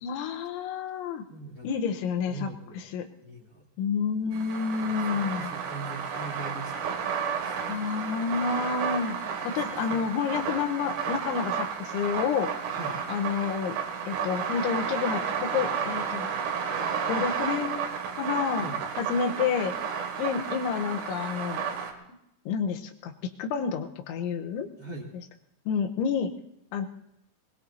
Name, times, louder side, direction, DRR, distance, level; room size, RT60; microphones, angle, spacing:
voice 1, 0.0-1.2 1.6-2.5 2.9-3.1 3.8-5.5 7.7-9.2 9.4-12.5 13.1-13.8 14.1-16.3 17.1-17.9 18.2-18.7 19.0-19.7 20.2-21.6 22.5-24.7 25.7-26.3 26.7-26.9, left 6 dB, 80° left, 5 dB, 3.2 m, -29 dB
voice 2, 1.3-1.8 2.3-2.9 3.2-3.7 4.8-7.9 9.1-10.0 12.7-13.0 18.5-18.8 24.8-25.1, right 3 dB, 40° left, -4 dB, 2.4 m, -42 dB
sound 1, 4.3-21.9, right 7 dB, 85° right, 4.6 m, -32 dB
22.0 x 21.5 x 2.7 m, 0.80 s
omnidirectional pair, 5.7 m